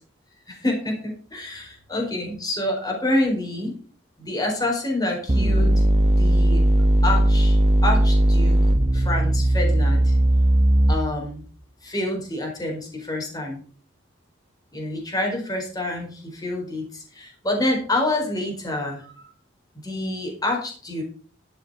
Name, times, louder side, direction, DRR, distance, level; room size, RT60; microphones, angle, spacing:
voice 1, 0.5-3.7 4.2-6.6 7.0-8.6 8.9-10.2 10.9-11.4 11.8-13.6 14.7-19.3 19.8-21.0, left 1 dB, 20° left, 1 dB, 4.5 m, -27 dB
sound 1, 5.3-11.3, right 1 dB, 30° right, 1.0 m, -18 dB
12.0 x 7.8 x 5.6 m, 0.41 s
head